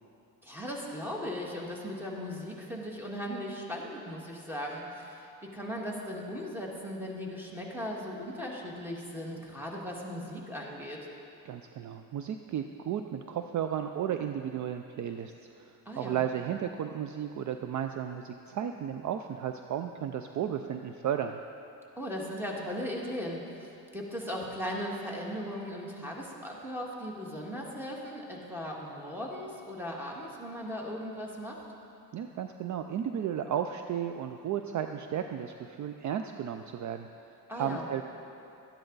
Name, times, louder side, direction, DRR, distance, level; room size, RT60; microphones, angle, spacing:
voice 1, 0.4-11.1 15.9-16.2 22.0-31.6 37.5-37.9, equal, 5° right, -2 dB, 1.8 m, -38 dB
voice 2, 11.4-21.4 32.1-38.0, right 9 dB, 50° right, 7 dB, 0.5 m, -34 dB
13.0 x 10.0 x 4.0 m, 2.7 s
cardioid pair, 100°, 38 cm